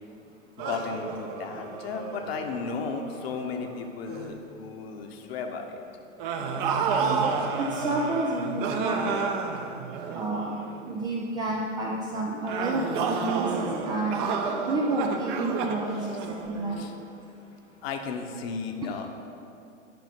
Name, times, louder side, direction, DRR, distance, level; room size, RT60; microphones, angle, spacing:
voice 1, 0.6-5.8 15.9-16.2 16.7-16.9 17.8-19.1, left 5 dB, 50° left, 4 dB, 1.1 m, -34 dB
sound 1, 0.6-3.7 4.1-4.4 6.2-10.8 12.5-17.0, right 5 dB, 40° right, 0.8 m, -31 dB
voice 2, 7.6-9.2 10.1-10.5 10.8-13.5 13.8-14.2 14.7-15.9 16.4-16.8, right 2 dB, 10° right, -2 dB, 0.3 m, -29 dB
10.5 x 5.5 x 5.1 m, 2.7 s
figure-of-eight pair, 100°, 38 cm